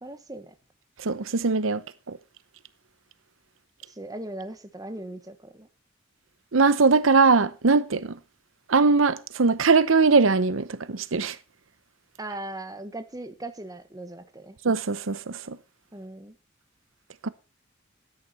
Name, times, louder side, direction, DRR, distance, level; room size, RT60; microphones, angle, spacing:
voice 1, 0.0-0.5 3.9-5.7 12.2-14.6 15.9-16.4, right 1 dB, 20° right, 1.3 m, -38 dB
voice 2, 1.0-2.2 6.5-8.2 8.7-11.4 14.6-15.6 17.2-17.3, right 4 dB, 90° right, 0.8 m, -21 dB
13.5 x 10.0 x 4.2 m
head